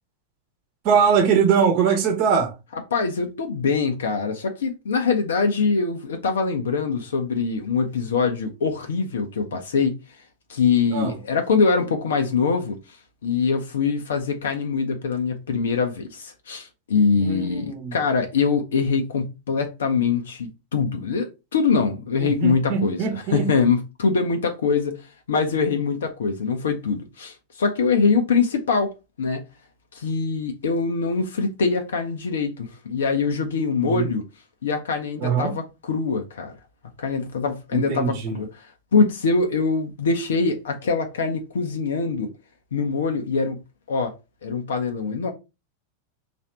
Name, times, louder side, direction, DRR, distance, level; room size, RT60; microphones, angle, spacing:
voice 1, 0.8-2.5 10.9-11.2 17.2-18.0 22.2-23.5 33.8-34.0 35.2-35.6 37.7-38.4, right 6 dB, 45° right, 0.9 m, -22 dB
voice 2, 2.9-10.0 10.5-12.8 13.2-23.0 23.3-29.4 29.9-34.2 34.6-36.5 37.0-38.5 38.9-42.3 42.7-43.6 43.9-44.1 44.4-45.3, left 5 dB, 65° left, 0.6 m, -23 dB
3.2 x 2.6 x 4.2 m
figure-of-eight pair, 90°, 0 cm